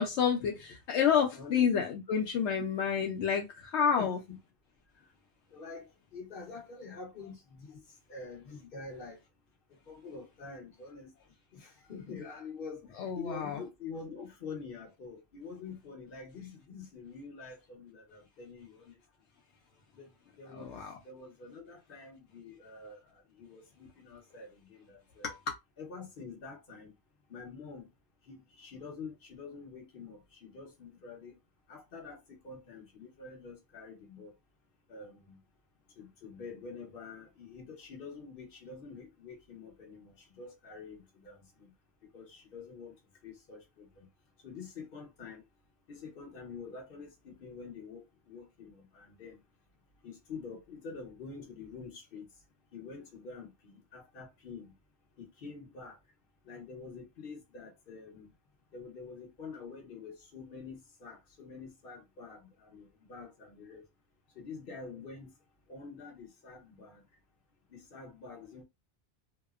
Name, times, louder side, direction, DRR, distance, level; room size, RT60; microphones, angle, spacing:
voice 1, 0.0-4.2 13.0-13.6 20.5-20.9 25.2-25.5, left 7 dB, 75° left, 0.9 m, -29 dB
voice 2, 1.3-1.7 2.6-2.7 4.0-4.4 5.5-7.8 8.1-9.2 9.9-11.1 11.5-12.8 13.1-18.9 20.0-20.1 20.4-20.8 21.0-23.0 23.4-25.4 25.8-26.9 27.3-27.9 28.3-31.3 31.7-34.3 34.9-35.4 36.0-41.7 42.1-42.9 43.2-44.1 44.4-45.4 45.9-49.4 50.0-52.3 52.7-54.7 55.2-56.0 56.5-58.3 58.7-63.8 64.4-65.3 65.7-67.0 67.7-68.6, left 4 dB, 55° left, 1.0 m, -46 dB
2.8 x 2.0 x 2.3 m
omnidirectional pair, 1.2 m